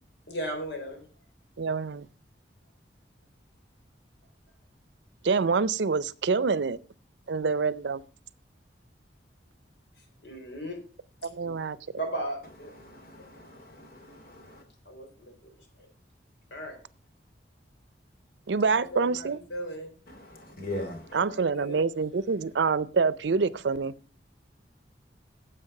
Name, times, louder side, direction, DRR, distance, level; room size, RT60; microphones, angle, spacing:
voice 1, 0.3-1.0 10.2-10.8 11.4-11.5 11.9-12.7 13.2-13.3 14.1-14.2 14.9-15.5 15.8-15.9 16.5-16.8 18.7-19.9 21.1-21.9, right 1 dB, 80° left, 3.8 m, -37 dB
voice 2, 1.6-2.1 5.2-6.8 7.3-8.0 11.3-11.8 18.5-19.4 21.1-23.9, right 4 dB, 85° right, 0.5 m, -26 dB
voice 3, 12.8-14.6 20.1-21.2, left 1 dB, 55° left, 2.8 m, -40 dB
9.7 x 7.8 x 5.4 m
head